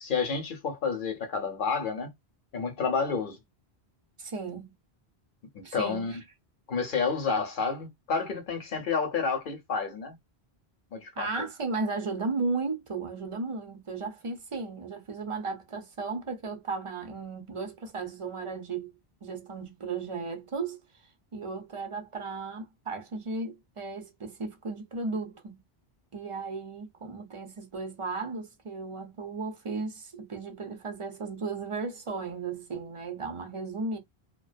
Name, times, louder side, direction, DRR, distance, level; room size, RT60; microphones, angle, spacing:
voice 1, 0.0-2.1 2.5-3.4 5.5-6.2 6.7-10.1 10.9-11.5, left 5 dB, 55° left, 0.8 m, -30 dB
voice 2, 4.2-4.7 5.6-6.2 11.2-20.8 21.3-25.6 26.1-34.0, right 4 dB, 40° right, 0.5 m, -35 dB
2.4 x 2.2 x 2.4 m
omnidirectional pair, 1.1 m